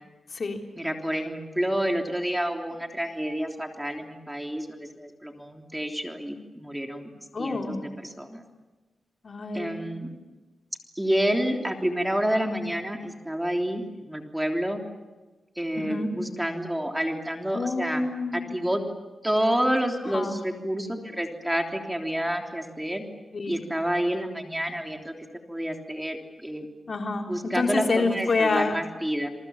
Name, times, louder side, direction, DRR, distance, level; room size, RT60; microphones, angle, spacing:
voice 1, 0.8-7.1 7.4-7.8 8.0-8.4 9.5-10.2 10.9-14.8 15.5-18.0 18.3-18.8 19.2-23.0 23.5-25.1 25.5-26.7 27.3-29.3, equal, 10° right, 3 dB, 3.3 m, -29 dB
voice 2, 7.3-7.8 9.2-9.8 15.8-16.1 17.5-18.5 20.1-20.3 23.3-23.6 26.9-28.8, left 3 dB, 55° left, 3 dB, 3.6 m, -27 dB
28.5 x 23.5 x 7.3 m, 1.2 s
cardioid pair, 75°, 0 cm